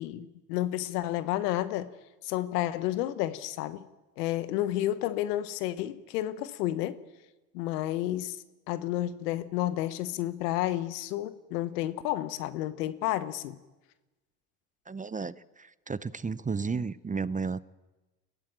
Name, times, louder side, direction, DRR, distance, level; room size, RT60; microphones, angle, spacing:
voice 1, 0.0-1.9 2.2-3.9 4.2-7.0 7.5-8.4 8.7-13.6, left 14 dB, 85° left, 1.2 m, -31 dB
voice 2, 14.9-17.6, right 5 dB, 15° right, 0.7 m, -33 dB
22.5 x 16.5 x 8.8 m
hypercardioid pair, 65°, 46 cm